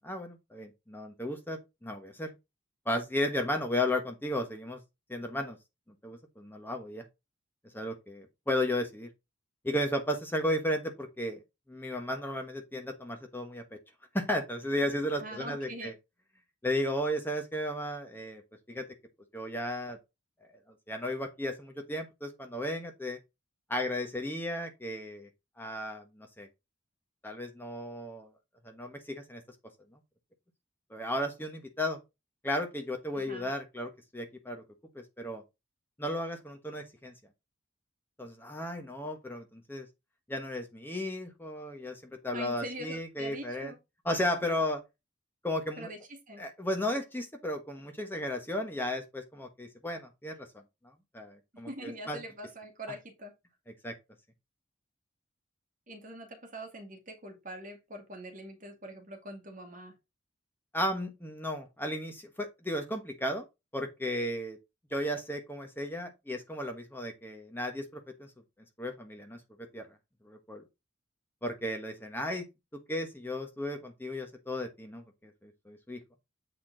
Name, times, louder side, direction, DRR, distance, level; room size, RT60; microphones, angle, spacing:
voice 1, 0.0-2.3 2.8-4.8 5.1-5.6 6.0-7.0 7.7-9.1 9.6-11.4 11.7-13.8 14.1-15.9 16.6-18.4 18.7-18.9 19.3-20.0 20.9-23.2 23.7-25.3 25.6-26.5 27.2-28.3 28.6-29.4 30.9-32.0 32.4-34.6 34.9-35.4 36.0-37.1 38.2-39.9 40.3-43.7 44.0-44.8 45.4-45.9 46.4-50.5 51.1-52.2 53.8-53.9 60.7-63.4 63.7-64.6 64.9-68.3 68.8-69.4 69.7-69.9 70.2-70.6 71.4-72.5 72.9-76.0, left 1 dB, 10° left, 1.1 m, -34 dB
voice 2, 15.2-15.9 33.1-33.5 42.3-43.8 45.8-46.4 51.5-53.3 55.9-59.9, right 1 dB, 40° right, 1.9 m, -43 dB
8.0 x 4.3 x 3.8 m
head